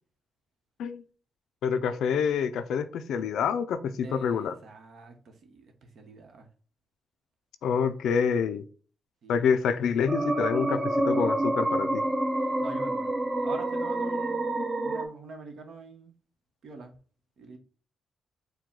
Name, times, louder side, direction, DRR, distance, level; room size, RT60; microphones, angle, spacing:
voice 1, 1.6-4.5 7.6-8.6 9.3-12.0 14.5-14.7, left 6 dB, 85° left, 10 dB, 0.4 m, -27 dB
voice 2, 4.0-6.5 9.2-9.5 9.8-10.1 12.4-13.1 13.4-16.1 16.6-17.0 17.4-17.6, right 3 dB, 70° right, 5 dB, 1.0 m, -45 dB
sound 1, 10.1-15.1, right 1 dB, 25° right, 0.5 m, -28 dB
4.6 x 2.2 x 3.7 m, 0.40 s
cardioid pair, 95°, 0 cm